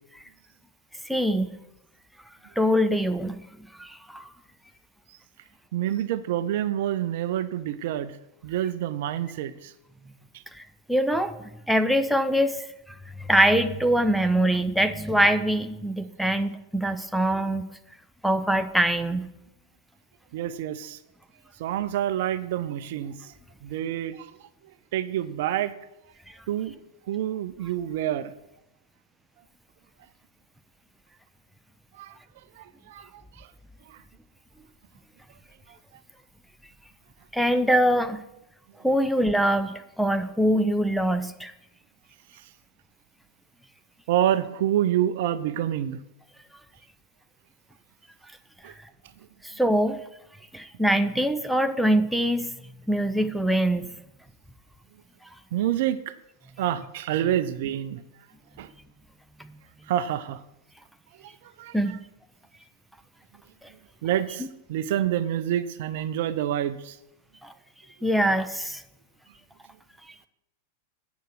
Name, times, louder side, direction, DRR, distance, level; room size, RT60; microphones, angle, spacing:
voice 1, 1.0-1.5 2.6-3.4 3.8-4.3 10.5-10.6 10.9-11.3 11.7-12.6 13.2-17.7 18.2-19.3 26.3-26.4 37.3-38.2 38.8-41.5 49.4-50.0 50.5-52.5 52.9-53.9 61.7-62.0 67.4-67.5 68.0-68.8, right 1 dB, ahead, 8 dB, 0.6 m, -23 dB
voice 2, 5.7-8.2 8.4-9.7 10.3-10.4 20.3-21.0 21.6-23.3 23.6-24.5 24.9-25.7 26.5-26.7 27.1-28.3 31.9-32.2 32.6-33.5 33.9-34.0 35.7-35.8 42.3-42.5 44.1-46.0 48.6-48.7 55.5-56.0 56.6-58.0 58.6-58.7 59.9-60.4 61.2-62.0 64.0-67.0, right 11 dB, 55° right, 14 dB, 0.5 m, -28 dB
9.2 x 7.0 x 6.2 m, 0.87 s
figure-of-eight pair, 90°, 0 cm